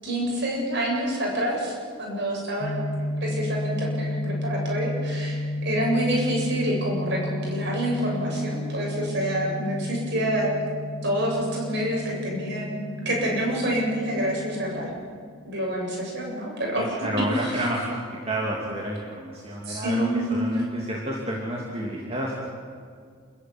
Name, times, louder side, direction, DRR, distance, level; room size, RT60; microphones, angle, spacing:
voice 1, 0.0-2.8 3.2-10.5 11.0-14.9 15.4-16.8 17.4-17.6 19.7-20.4, right 1 dB, 50° right, -2 dB, 7.8 m, -27 dB
sound 1, 2.6-14.9, left 1 dB, 40° left, 2.0 m, -32 dB
voice 2, 16.8-22.4, right 1 dB, 25° right, -3 dB, 2.7 m, -30 dB
29.0 x 14.0 x 9.5 m, 2.1 s
head